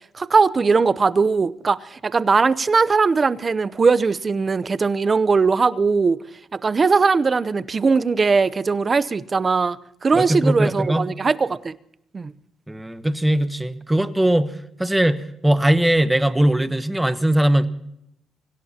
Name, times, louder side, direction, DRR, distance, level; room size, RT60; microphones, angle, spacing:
voice 1, 0.1-6.2 6.5-11.7 12.1-12.3, right 4 dB, 35° right, 0.7 m, -19 dB
voice 2, 10.1-11.0 12.7-14.5 14.8-17.7, right 1 dB, 10° right, 1.1 m, -20 dB
24.5 x 17.0 x 2.9 m
cardioid pair, 90°, 0 cm